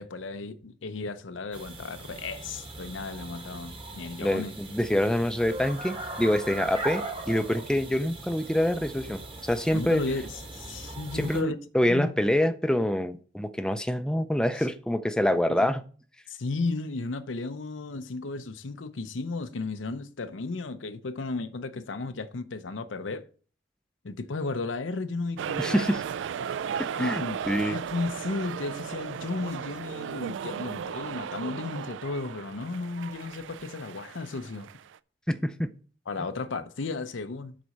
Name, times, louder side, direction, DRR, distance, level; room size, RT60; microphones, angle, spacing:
voice 1, 0.0-4.6 9.7-11.6 11.9-12.1 15.5-15.7 16.3-23.3 24.0-26.0 27.0-34.7 36.1-37.6, left 3 dB, 90° left, 0.7 m, -34 dB
sound 1, 1.5-11.4, right 2 dB, 30° right, 1.3 m, -40 dB
voice 2, 4.2-10.0 11.1-15.8 25.6-26.0 26.8-27.8 35.3-35.7, equal, 5° left, 0.4 m, -26 dB
sound 2, 25.4-35.0, right 7 dB, 80° right, 0.3 m, -35 dB
7.7 x 4.1 x 6.4 m
head